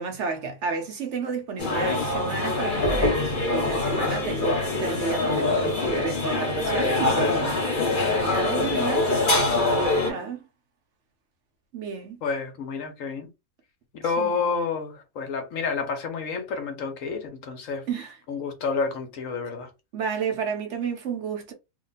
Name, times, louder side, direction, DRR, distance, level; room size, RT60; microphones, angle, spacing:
voice 1, 0.0-7.6 8.1-9.3 10.0-10.5 11.7-12.2 14.2-14.4 17.9-18.2 19.9-21.5, right 5 dB, 60° right, 1.0 m, -31 dB
sound 1, 1.6-10.1, left 2 dB, 40° left, 1.3 m, -24 dB
voice 2, 12.2-13.3 13.9-17.9 18.3-19.7, left 5 dB, 70° left, 1.2 m, -29 dB
2.9 x 2.2 x 3.9 m
omnidirectional pair, 1.5 m